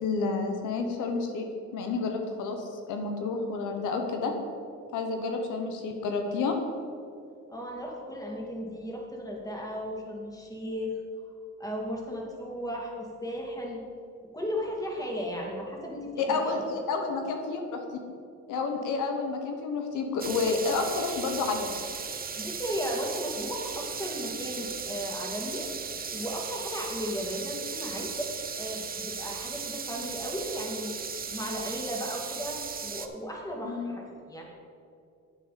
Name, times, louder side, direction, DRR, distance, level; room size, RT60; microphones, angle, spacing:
voice 1, 0.0-1.5 1.7-4.3 4.9-6.6 16.2-17.8 18.5-21.7 33.6-34.0, left 4 dB, 90° left, 4 dB, 1.1 m, -30 dB
voice 2, 7.5-11.0 11.6-13.8 14.3-16.6 22.4-25.7 26.1-28.3 28.6-30.9 31.3-34.4, equal, 10° left, -1 dB, 2.2 m, -35 dB
sound 1, 20.2-33.1, right 6 dB, 30° right, 0.7 m, -37 dB
10.0 x 8.3 x 4.2 m, 2.5 s
cardioid pair, 90°, 30 cm